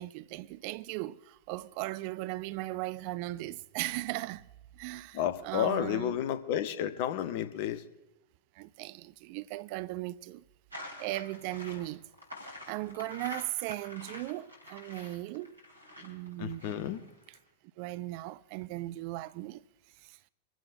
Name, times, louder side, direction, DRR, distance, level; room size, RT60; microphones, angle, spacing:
voice 1, 0.0-4.4 4.7-6.2 8.6-10.4 11.0-12.0 12.7-15.6 16.0-17.0 17.8-19.6 20.0-20.2, right 18 dB, 45° right, 0.5 m, -38 dB
voice 2, 5.1-7.8 16.4-17.0, left 10 dB, 50° left, 1.1 m, -31 dB
sound 1, 10.7-17.4, left 1 dB, 85° right, 3.5 m, -47 dB
24.5 x 15.5 x 2.6 m
figure-of-eight pair, 90°, 0 cm